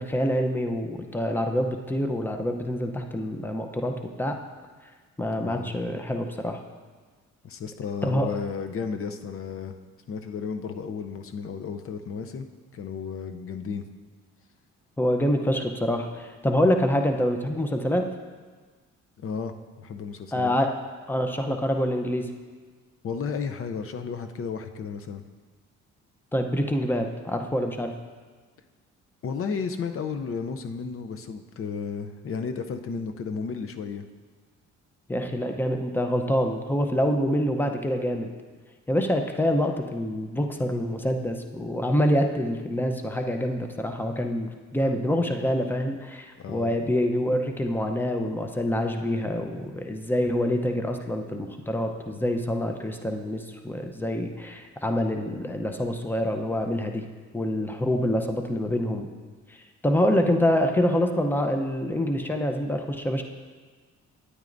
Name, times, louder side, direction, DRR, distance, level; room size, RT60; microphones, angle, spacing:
voice 1, 0.0-4.4 5.2-6.6 8.0-8.3 15.0-18.1 20.3-20.7 21.1-22.3 26.3-27.9 35.1-38.3 38.9-57.0 57.3-59.1 59.5-59.6 59.8-63.2, equal, 5° left, 4 dB, 0.7 m, -26 dB
voice 2, 5.4-5.7 7.4-9.8 10.1-12.5 12.7-13.8 19.2-20.6 23.0-25.2 29.2-34.1 46.4-46.7, left 5 dB, 45° left, 7 dB, 0.6 m, -33 dB
9.6 x 9.0 x 2.6 m, 1.4 s
cardioid pair, 90°, 30 cm